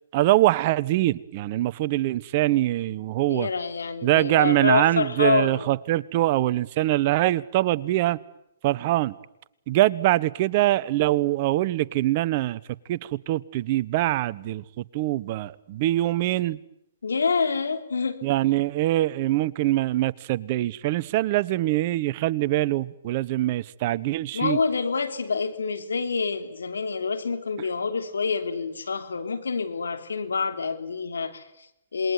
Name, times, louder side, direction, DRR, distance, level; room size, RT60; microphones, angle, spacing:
voice 1, 0.1-3.5 4.0-8.2 8.6-9.1 9.7-12.6 12.9-16.6 18.2-24.6, right 16 dB, 45° right, 16 dB, 1.1 m, -23 dB
voice 2, 3.3-5.6 17.0-18.2 24.3-32.1, left 5 dB, 85° left, 8 dB, 3.2 m, -27 dB
27.5 x 21.5 x 9.5 m, 0.83 s
hypercardioid pair, 135°, 0 cm